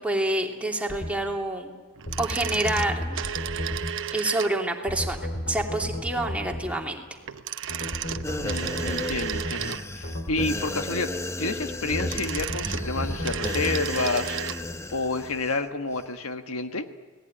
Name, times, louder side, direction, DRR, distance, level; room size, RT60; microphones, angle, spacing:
voice 1, 0.0-1.8 2.2-3.2 4.1-7.0, right 1 dB, 5° right, 1 dB, 3.0 m, -27 dB
sound 1, 0.9-1.1 2.1-4.0 4.9-6.7 7.7-9.6 10.0-10.6 11.9-13.8, left 1 dB, 55° left, 3.3 m, -33 dB
sound 2, 2.0-4.8 7.2-10.1 11.8-14.6 14.9-15.0, right 9 dB, 65° right, 1.0 m, -33 dB
sound 3, 8.2-15.6 15.9-16.1, left 1 dB, 15° left, 0.8 m, -35 dB
voice 2, 8.4-11.1 11.4-14.4 14.9-16.9, left 3 dB, 85° left, 7 dB, 1.6 m, -29 dB
29.5 x 19.5 x 10.0 m, 1.4 s
head